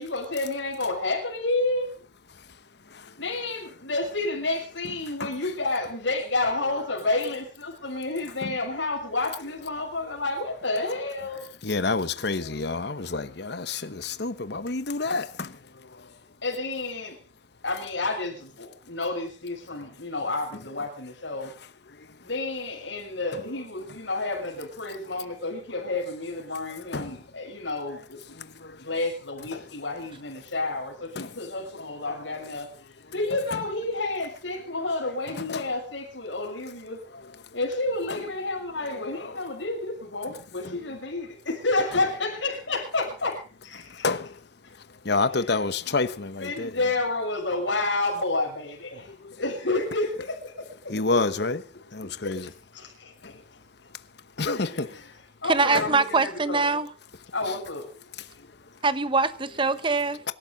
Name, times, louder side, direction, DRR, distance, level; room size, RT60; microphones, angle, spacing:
voice 1, 0.0-1.9 3.2-11.4 16.4-17.2 17.6-21.5 22.2-28.2 28.8-32.7 33.1-37.0 37.5-44.1 45.5-46.0 46.4-50.9 52.2-53.3 54.4-55.0 55.4-56.8 57.3-57.9, left 2 dB, 75° left, 6.7 m, -30 dB
voice 2, 11.6-16.1 21.9-22.1 23.3-23.4 24.1-24.2 26.7-27.2 28.3-28.9 29.5-29.7 31.1-31.4 32.1-32.2 33.5-33.6 35.3-35.7 37.1-37.5 38.1-38.2 38.8-39.4 40.6-40.8 41.9-42.0 43.9-44.4 45.0-46.8 49.1-49.3 50.9-51.6 51.9-52.5 53.2-53.4 54.4-55.0 55.7-55.9 57.4-57.6 58.2-58.3, left 3 dB, 60° left, 1.0 m, -30 dB
voice 3, 55.5-56.9 58.8-60.2, right 4 dB, 25° right, 1.1 m, -23 dB
25.5 x 12.5 x 4.0 m
head